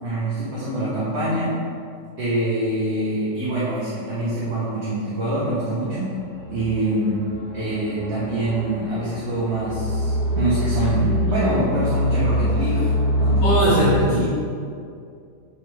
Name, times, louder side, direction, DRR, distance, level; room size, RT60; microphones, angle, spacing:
voice 1, 0.0-1.6 2.2-6.1 6.5-7.2 7.5-14.2, right 1 dB, 40° right, -9 dB, 1.6 m, -25 dB
sound 1, 6.3-13.6, equal, 65° left, 1.7 m, -24 dB
voice 2, 13.4-14.3, equal, 40° left, -11 dB, 2.3 m, -19 dB
7.2 x 7.0 x 3.5 m, 2.4 s
omnidirectional pair, 1.9 m